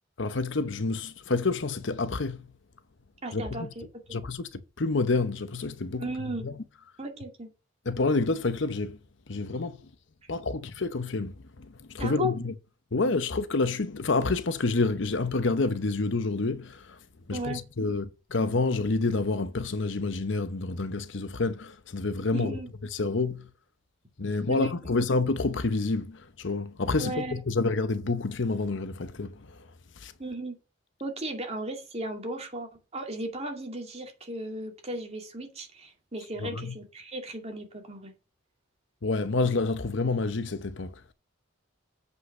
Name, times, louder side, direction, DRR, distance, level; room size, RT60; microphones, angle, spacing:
voice 1, 0.2-2.4 3.3-3.7 4.1-4.5 4.8-6.0 6.4-6.6 7.9-9.0 9.3-9.8 10.3-12.5 12.9-17.0 17.3-22.6 22.9-23.5 24.2-29.6 30.0-30.1 36.4-36.7 39.0-41.1, left 3 dB, 60° left, 0.8 m, -28 dB
voice 2, 3.2-4.2 6.0-6.5 7.0-7.5 10.2-10.3 12.0-12.3 17.3-17.6 22.3-22.7 24.5-24.7 27.0-27.3 30.2-30.6 31.0-38.1, right 2 dB, 30° right, 2.4 m, -36 dB
7.9 x 5.7 x 6.6 m
head